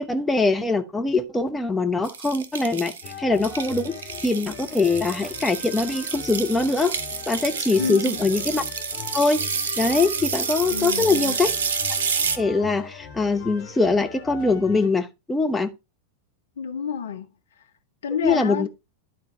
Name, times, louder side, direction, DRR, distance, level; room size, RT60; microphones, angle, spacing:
voice 1, 0.0-3.9 4.2-6.9 7.3-8.6 9.1-9.4 9.8-11.5 12.4-15.7 18.2-18.7, left 3 dB, 10° left, 0.9 m, -22 dB
sound 1, 2.0-12.4, right 6 dB, 60° right, 0.8 m, -29 dB
sound 2, 3.0-14.9, left 6 dB, 45° left, 1.8 m, -40 dB
voice 2, 7.8-8.2 10.7-11.4 16.6-17.3 18.0-18.7, left 7 dB, 65° left, 1.0 m, -29 dB
11.5 x 4.0 x 4.2 m
figure-of-eight pair, 90°, 0 cm